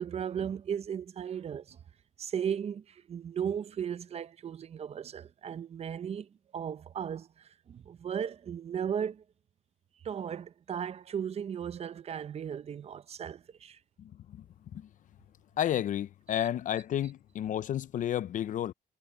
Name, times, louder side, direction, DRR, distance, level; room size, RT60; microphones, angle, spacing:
voice 1, 0.0-1.8 2.2-9.2 10.0-13.8, right 8 dB, 40° right, 0.7 m, -36 dB
voice 2, 14.0-14.4 14.7-14.9 15.6-18.7, left 11 dB, 50° left, 0.6 m, -32 dB
cardioid pair, 110°, 17 cm